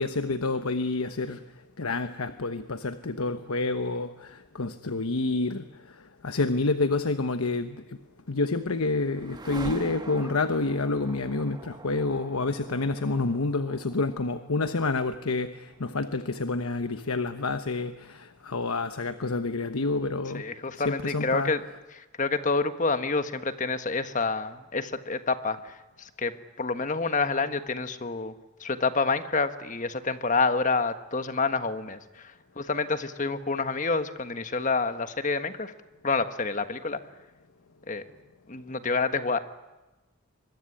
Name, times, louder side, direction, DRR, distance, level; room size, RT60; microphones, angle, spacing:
voice 1, 0.0-1.4 1.8-8.0 8.3-20.4 20.7-21.5, left 3 dB, 90° left, 10 dB, 1.1 m, -28 dB
sound 1, 8.0-18.1, right 2 dB, 20° right, 1.4 m, -45 dB
voice 2, 20.3-21.6 21.9-28.3 28.6-35.7 36.0-37.0 37.9-38.0 38.5-39.4, left 4 dB, 35° left, 10 dB, 1.4 m, -28 dB
25.0 x 22.0 x 9.9 m, 1.1 s
head